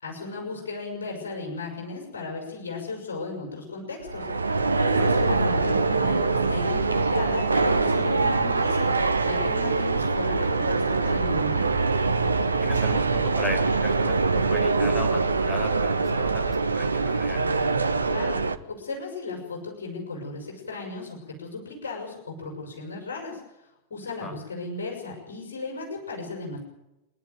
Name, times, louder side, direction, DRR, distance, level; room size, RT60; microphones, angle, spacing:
voice 1, 0.0-6.2 6.5-11.7 18.1-18.4 18.7-26.6, left 3 dB, 65° left, 0 dB, 6.5 m, -35 dB
sound 1, 4.0-18.6, right 3 dB, 80° right, 1.0 m, -24 dB
voice 2, 12.6-17.5 24.2-24.4, left 1 dB, 10° left, 2 dB, 5.4 m, -37 dB
27.0 x 11.0 x 9.4 m, 0.94 s
figure-of-eight pair, 90°, 0 cm